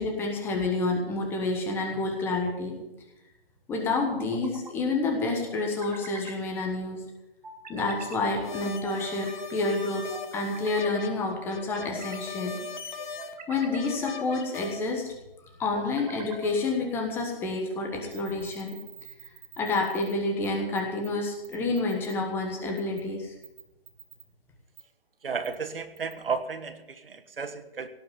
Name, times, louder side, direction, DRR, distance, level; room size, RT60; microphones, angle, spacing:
voice 1, 0.0-2.7 3.7-7.0 7.7-12.6 13.5-15.1 15.6-18.8 19.6-23.3, left 3 dB, 10° left, 1 dB, 1.2 m, -29 dB
sound 1, 1.9-2.6 4.0-4.7 5.6-6.4 7.4-8.2 8.8-9.5 10.1-10.9 11.6-12.3 13.0-13.9 14.5-15.0 15.7-16.6, right 5 dB, 45° right, 1.9 m, -45 dB
sound 2, 8.4-14.8, left 6 dB, 55° left, 1.6 m, -40 dB
sound 3, 18.1-20.1 20.4-20.5 20.7-21.1 21.4-22.1 22.8-23.0 23.4-24.2 24.8-24.9 25.4-25.6 26.0-26.1, right 11 dB, 25° right, 1.3 m, -47 dB
voice 2, 25.2-27.9, right 5 dB, 70° right, 10 dB, 1.5 m, -33 dB
17.5 x 6.0 x 9.5 m, 0.97 s
hypercardioid pair, 155°, 29 cm